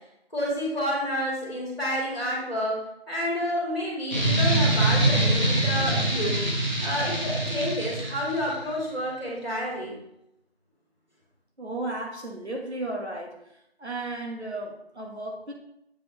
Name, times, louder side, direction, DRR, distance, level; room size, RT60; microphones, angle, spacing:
voice 1, 0.3-6.4 6.8-10.0, equal, 45° left, -5 dB, 2.2 m, -29 dB
sound 1, 4.1-8.6, right 1 dB, 45° right, 1.4 m, -24 dB
voice 2, 11.6-13.3 13.8-15.5, right 2 dB, 90° right, 1 dB, 1.6 m, -34 dB
7.4 x 5.5 x 3.1 m, 0.82 s
figure-of-eight pair, 180°, 32 cm